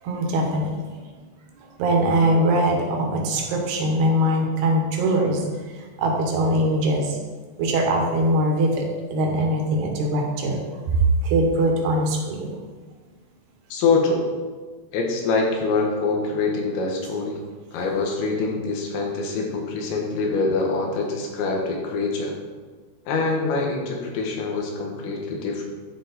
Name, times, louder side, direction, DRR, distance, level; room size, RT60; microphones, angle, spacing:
voice 1, 0.0-1.0 1.8-5.4 6.0-7.2 7.6-8.9 9.1-10.6 11.2-12.5, right 1 dB, 70° right, 1 dB, 2.8 m, -22 dB
voice 2, 13.7-14.3 14.9-17.4 17.7-22.3 23.1-25.6, left 3 dB, 80° left, 0 dB, 3.4 m, -24 dB
12.0 x 4.6 x 4.1 m, 1.4 s
omnidirectional pair, 5.2 m